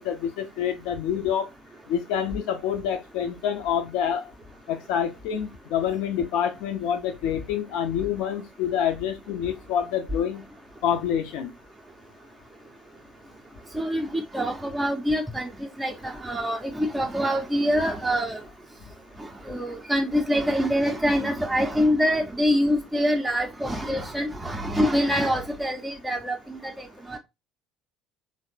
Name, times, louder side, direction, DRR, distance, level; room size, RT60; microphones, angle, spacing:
voice 1, 0.0-1.5 1.9-4.2 4.7-10.4 10.8-11.5, left 9 dB, 60° left, 0.5 m, -27 dB
voice 2, 13.7-18.4 19.2-27.2, equal, 10° right, 0.5 m, -25 dB
3.1 x 2.0 x 2.8 m
figure-of-eight pair, 55°, 0 cm